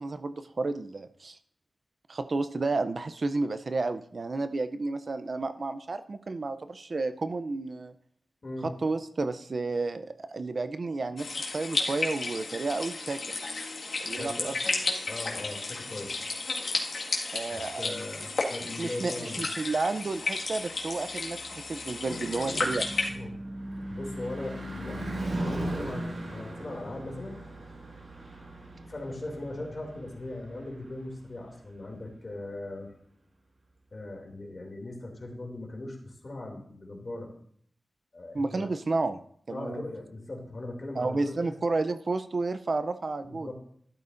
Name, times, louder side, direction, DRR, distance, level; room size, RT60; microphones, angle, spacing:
voice 1, 0.0-1.4 2.1-7.9 8.6-11.3 11.5-13.2 14.0-14.6 17.3-17.8 18.8-22.9 38.3-39.2 39.5-39.8 41.0-43.5, right 3 dB, 50° right, 10 dB, 0.5 m, -31 dB
sound 1, 11.2-23.1, left 3 dB, 80° left, 1.8 m, -33 dB
voice 2, 14.2-14.5 15.1-16.2 17.5-19.5 22.0-23.3 23.6-27.4 28.9-32.9 33.9-37.3 38.1-38.7 39.5-41.5 43.2-43.5, left 2 dB, 40° left, 0 dB, 2.6 m, -39 dB
Car passing by / Truck / Engine, 21.2-31.5, right 1 dB, 75° right, 5.5 m, -38 dB
12.5 x 12.0 x 2.6 m, 0.62 s
wide cardioid pair, 125°, 0 cm